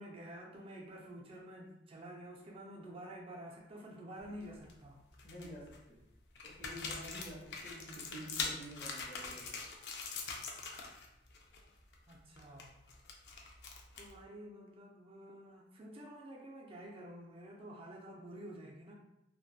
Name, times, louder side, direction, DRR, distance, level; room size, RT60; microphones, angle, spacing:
voice 1, 0.0-5.0 12.1-12.8 13.9-18.9, right 1 dB, 30° right, -1 dB, 0.4 m, -50 dB
sound 1, 4.2-4.7 5.1-5.8 6.3-11.1 11.3-11.6 11.9-14.2, left 4 dB, 70° left, 0.4 m, -43 dB
voice 2, 5.2-6.0 6.4-9.5, equal, 50° left, -6 dB, 1.0 m, -49 dB
2.7 x 2.2 x 2.3 m, 0.87 s
head